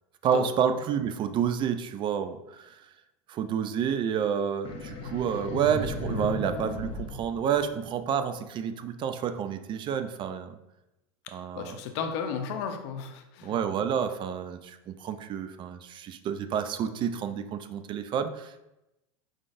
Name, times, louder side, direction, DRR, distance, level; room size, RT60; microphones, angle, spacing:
voice 1, 0.2-2.8 3.3-10.6 11.3-11.8 13.4-18.6, right 8 dB, 35° right, 9 dB, 0.4 m, -29 dB
sound 1, 4.6-8.1, left 2 dB, 40° left, 0.9 m, -36 dB
voice 2, 11.5-13.5, left 6 dB, 70° left, 6 dB, 0.7 m, -34 dB
4.8 x 3.8 x 2.5 m, 0.93 s
supercardioid pair, 125°, 15 cm